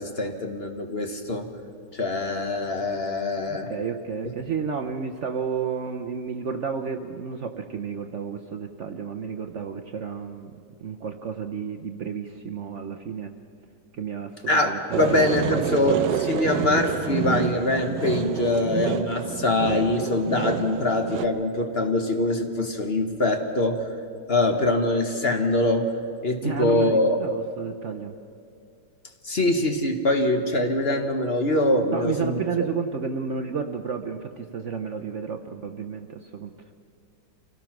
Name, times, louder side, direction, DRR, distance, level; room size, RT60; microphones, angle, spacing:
voice 1, 0.0-1.5 1.9-3.7 14.5-23.9 24.3-25.9 26.2-27.2 29.2-32.4, left 1 dB, 40° left, 5 dB, 1.4 m, -23 dB
voice 2, 3.5-10.5 10.8-13.3 13.9-16.1 26.4-28.1 31.9-36.5, right 6 dB, 55° right, 5 dB, 0.9 m, -31 dB
sound 1, 14.9-21.3, right 9 dB, 70° right, 1.3 m, -29 dB
26.0 x 17.5 x 5.9 m, 2.5 s
omnidirectional pair, 1.9 m